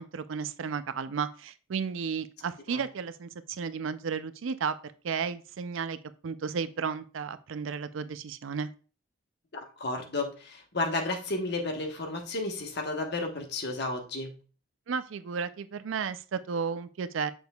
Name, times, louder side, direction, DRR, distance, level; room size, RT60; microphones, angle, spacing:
voice 1, 0.0-4.8 5.0-6.0 6.2-8.7 14.9-17.3, right 6 dB, 75° right, 12 dB, 0.4 m, -33 dB
voice 2, 9.5-14.3, left 2 dB, 55° left, 3 dB, 1.2 m, -32 dB
6.8 x 6.2 x 2.3 m, 0.36 s
head